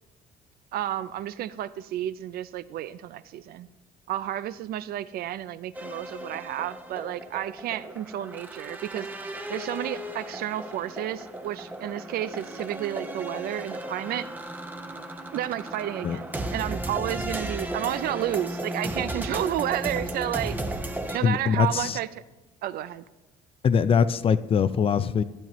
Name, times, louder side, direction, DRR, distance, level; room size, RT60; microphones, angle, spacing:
voice 1, 0.7-3.7 4.1-9.1 9.5-14.3 15.3-20.6 21.1-22.1 22.6-23.0, right 12 dB, 65° right, 15 dB, 0.4 m, -31 dB
sound 1, 5.7-21.2, right 1 dB, 10° right, 0.7 m, -35 dB
voice 2, 21.2-22.0 23.6-25.2, left 6 dB, 35° left, 14 dB, 0.4 m, -22 dB
12.0 x 10.5 x 3.0 m, 1.1 s
cardioid pair, 110°, 17 cm